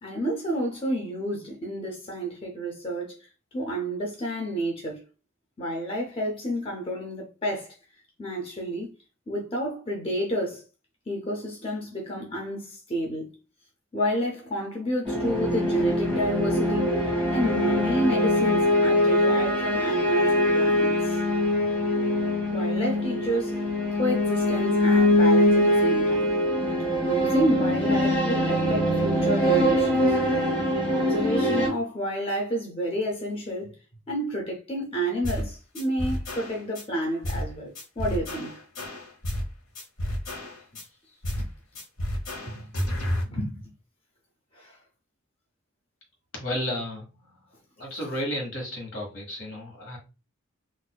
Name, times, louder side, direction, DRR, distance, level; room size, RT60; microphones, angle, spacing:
voice 1, 0.0-5.0 5.6-7.8 8.2-8.9 9.3-10.6 11.1-13.3 13.9-21.2 22.5-23.7 23.9-26.3 27.0-30.2 30.9-33.8 34.1-38.6 41.4-41.5 42.5-43.0 43.2-43.6 44.5-44.8, right 1 dB, 25° left, 0.6 m, -30 dB
sound 1, 15.0-31.7, left 1 dB, 5° left, 1.5 m, -23 dB
sound 2, 35.2-35.5 35.7-36.8 37.2-37.5 37.7-39.5 39.7-40.8 41.2-41.5 41.7-43.2, left 1 dB, 85° left, 1.0 m, -31 dB
voice 2, 46.3-47.1 47.8-50.0, equal, 70° left, 1.3 m, -32 dB
4.0 x 2.5 x 2.3 m
head